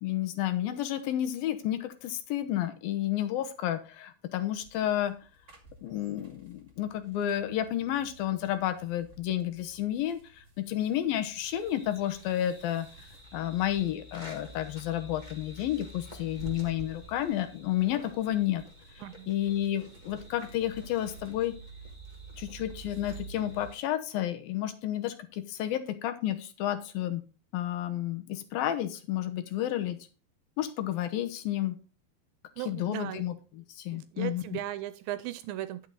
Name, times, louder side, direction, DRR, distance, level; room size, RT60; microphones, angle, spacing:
voice 1, 0.0-5.1 5.8-12.9 13.3-18.6 19.3-21.5 22.4-27.2 27.5-30.0 30.6-31.8 32.6-34.6, left 12 dB, 75° left, 8 dB, 2.7 m, -31 dB
sound 1, 4.6-23.6, right 3 dB, 25° right, 2.1 m, -52 dB
sound 2, 11.4-23.8, right 2 dB, 15° left, 1.6 m, -51 dB
voice 2, 32.6-33.2 33.9-35.9, right 13 dB, 80° right, 13 dB, 2.3 m, -37 dB
10.5 x 6.5 x 3.9 m, 0.34 s
omnidirectional pair, 4.4 m